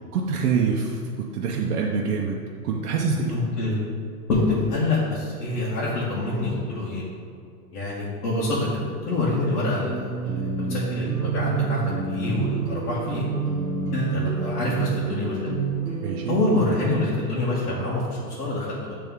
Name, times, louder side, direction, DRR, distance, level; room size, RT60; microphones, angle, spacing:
voice 1, 0.1-2.4 2.6-3.3 16.0-16.4, right 5 dB, 70° right, -2 dB, 0.8 m, -25 dB
voice 2, 3.3-3.8 4.3-7.0 7.7-11.8 12.1-13.2 13.9-15.5 16.3-19.0, left 2 dB, 75° left, -7 dB, 1.4 m, -26 dB
sound 1, 9.9-16.3, right 5 dB, 20° right, 0.9 m, -28 dB
7.8 x 3.4 x 3.5 m, 2.3 s
supercardioid pair, 175°, 47 cm